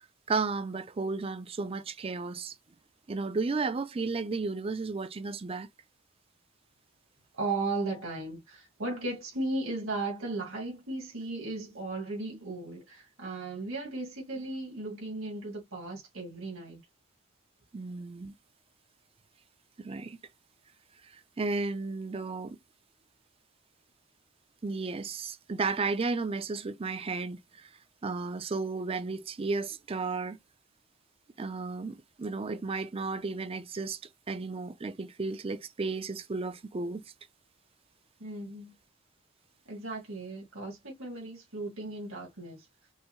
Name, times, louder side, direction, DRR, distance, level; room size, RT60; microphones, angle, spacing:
voice 1, 0.3-2.5 3.1-5.7 17.7-18.3 19.8-20.2 21.4-22.6 24.6-27.7 28.0-30.4 31.4-34.0 34.3-37.0, right 4 dB, 30° right, 0.4 m, -33 dB
voice 2, 7.3-16.8 38.2-38.7 39.7-42.7, right 2 dB, 85° right, 2.1 m, -36 dB
5.4 x 2.0 x 3.0 m
head